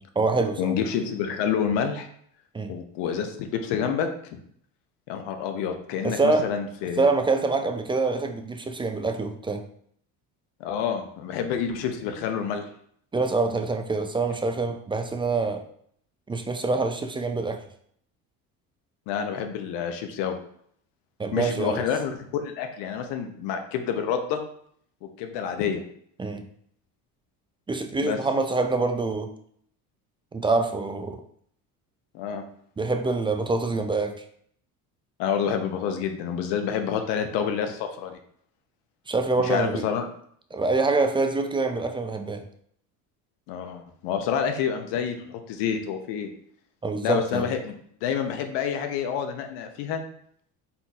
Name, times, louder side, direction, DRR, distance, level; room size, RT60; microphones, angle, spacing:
voice 1, 0.0-0.8 2.5-2.7 6.0-6.5 7.0-9.6 13.1-15.6 16.3-17.6 21.2-21.8 26.2-26.5 27.7-29.3 30.3-31.2 32.8-34.2 39.1-39.8 40.5-42.4 46.8-47.5, right 3 dB, 15° right, 6 dB, 0.3 m, -25 dB
voice 2, 0.6-2.1 2.7-4.4 5.1-7.0 10.6-12.7 19.1-20.3 21.3-24.4 25.0-25.8 28.0-28.2 32.1-32.4 35.2-38.2 39.4-40.0 43.5-46.3 47.0-47.7 48.0-50.0, left 7 dB, 75° left, 6 dB, 0.9 m, -28 dB
4.2 x 3.9 x 2.4 m, 0.64 s
supercardioid pair, 85°, 43 cm